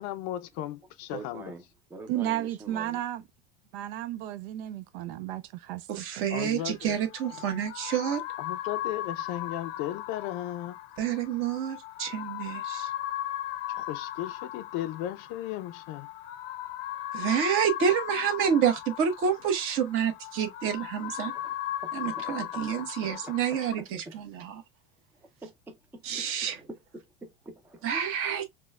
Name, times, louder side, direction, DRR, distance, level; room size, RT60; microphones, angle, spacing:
voice 1, 0.0-1.5 6.3-7.0 8.4-10.8 13.7-16.1, left 13 dB, 50° left, 0.5 m, -35 dB
voice 2, 1.1-1.6 1.9-3.0 21.4-21.5 21.8-23.3 23.7-23.8 25.4-27.9, right 2 dB, 5° right, 0.4 m, -45 dB
voice 3, 2.1-3.2 3.7-6.5, right 13 dB, 70° right, 0.5 m, -33 dB
voice 4, 5.9-8.2 11.0-12.9 17.1-21.3 21.9-24.6 26.0-26.6 27.8-28.4, right 8 dB, 45° right, 1.1 m, -28 dB
sound 1, 6.7-23.7, left 13 dB, 80° left, 0.7 m, -37 dB
4.2 x 2.2 x 2.3 m
supercardioid pair, 135°, 29 cm